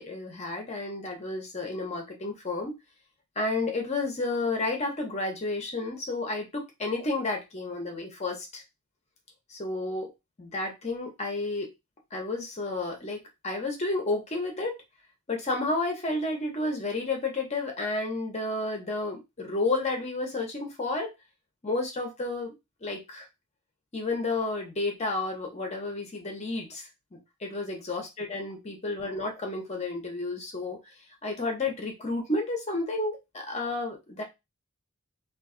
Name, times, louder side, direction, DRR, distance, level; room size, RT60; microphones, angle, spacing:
voice 1, 0.0-2.8 3.4-8.6 9.5-10.1 10.4-11.7 12.1-14.7 15.3-21.1 21.6-22.5 22.8-23.3 23.9-26.9 27.4-30.8 31.2-34.2, left 2 dB, 30° left, 2 dB, 0.7 m, -31 dB
2.5 x 2.2 x 3.6 m, 0.23 s
head